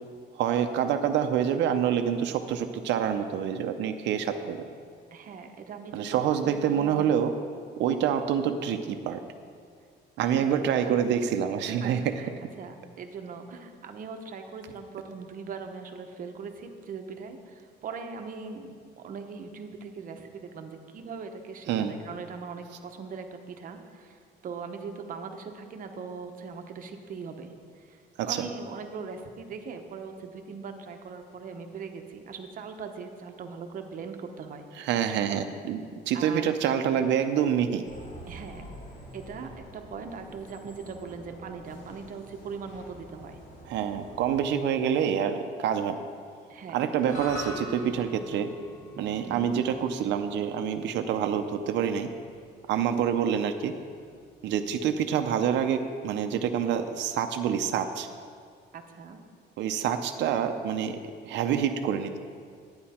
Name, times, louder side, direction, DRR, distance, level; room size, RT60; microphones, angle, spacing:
voice 1, 0.4-4.7 5.9-7.3 7.8-9.2 10.2-12.2 21.7-21.9 28.2-28.5 34.8-37.8 43.6-46.0 46.7-48.5 49.0-52.1 52.7-53.7 54.4-58.1 59.6-61.0 61.2-62.2, right 8 dB, 85° right, 6 dB, 0.6 m, -27 dB
voice 2, 5.1-7.0 10.2-11.1 11.7-12.3 12.6-34.6 36.1-36.6 38.3-38.6 39.1-43.4 46.5-46.8 49.3-49.5 58.7-59.2, right 5 dB, 50° right, 5 dB, 0.9 m, -40 dB
sound 1, 37.8-44.5, equal, 85° left, 2.4 m, -47 dB
sound 2, 47.1-55.5, left 1 dB, 40° left, 2.1 m, -46 dB
11.5 x 9.6 x 4.3 m, 2.1 s
cardioid pair, 150°, 18 cm